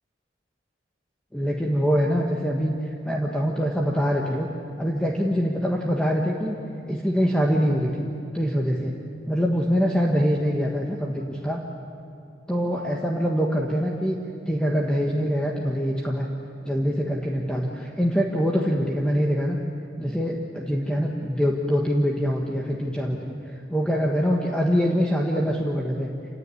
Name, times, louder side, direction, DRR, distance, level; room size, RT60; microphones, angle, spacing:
voice 1, 1.3-2.7 3.0-4.5 4.8-6.5 6.9-8.1 8.3-8.9 9.3-11.6 12.5-14.2 14.5-16.3 16.6-19.6 20.0-23.4 23.7-26.1, equal, 5° left, -1 dB, 1.4 m, -24 dB
28.0 x 16.0 x 9.7 m, 2.6 s
head